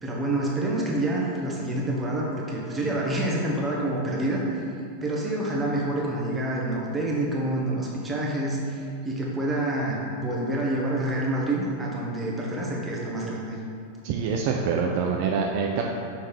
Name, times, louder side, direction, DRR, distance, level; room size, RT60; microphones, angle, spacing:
voice 1, 0.0-4.4 5.0-13.6, right 1 dB, 15° right, -4 dB, 1.2 m, -27 dB
voice 2, 14.0-15.8, right 6 dB, 45° right, 1 dB, 0.4 m, -25 dB
6.3 x 3.6 x 4.5 m, 2.4 s
figure-of-eight pair, 90°, 0 cm